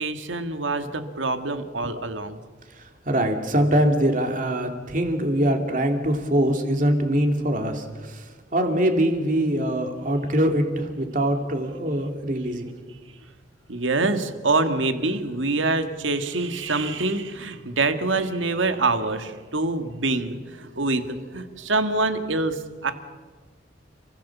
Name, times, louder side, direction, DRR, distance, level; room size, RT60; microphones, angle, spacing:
voice 1, 0.0-2.4 13.7-22.9, right 3 dB, 90° right, 8 dB, 1.8 m, -25 dB
voice 2, 3.1-8.2 8.5-12.7, right 1 dB, 45° right, 5 dB, 2.7 m, -23 dB
29.5 x 15.5 x 7.3 m, 1.4 s
head